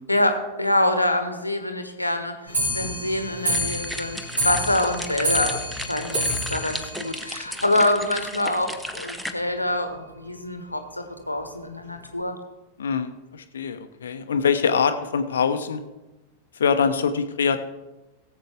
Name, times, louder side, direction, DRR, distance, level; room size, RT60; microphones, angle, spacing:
voice 1, 0.1-5.6 5.9-12.4, left 1 dB, 85° left, 7 dB, 1.2 m, -25 dB
Clock, 2.5-8.0 8.3-8.4 8.7-8.8 9.1-9.2 9.4-9.5 10.2-10.3 11.0-11.1 11.8-11.9, equal, 80° right, 4.3 m, -29 dB
sound 1, 3.4-9.3, left 1 dB, ahead, 0.8 m, -35 dB
voice 2, 12.8-15.8 16.6-17.6, left 6 dB, 65° left, 9 dB, 0.8 m, -23 dB
18.0 x 7.9 x 3.5 m, 1.1 s
figure-of-eight pair, 90°, 0 cm